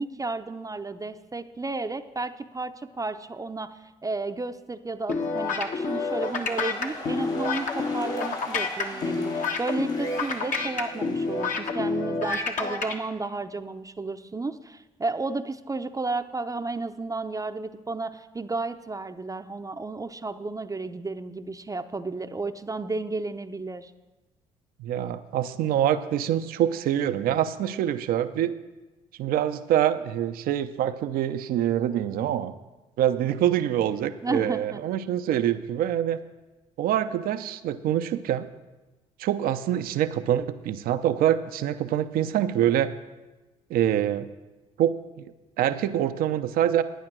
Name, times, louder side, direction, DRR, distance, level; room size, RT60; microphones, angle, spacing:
voice 1, 0.0-23.9 34.2-34.8, right 3 dB, 20° right, 7 dB, 0.7 m, -32 dB
sound 1, 5.1-12.0, left 1 dB, 90° left, 5.2 m, -41 dB
sound 2, 5.1-12.9, left 4 dB, 55° left, 1.4 m, -28 dB
voice 2, 24.8-28.5 29.2-32.5 33.0-36.2 36.8-38.5 39.2-42.9 43.7-44.3 44.8-45.0 45.6-46.8, right 11 dB, 70° right, 10 dB, 0.7 m, -25 dB
11.5 x 9.4 x 6.2 m, 1.1 s
hypercardioid pair, 55°, 16 cm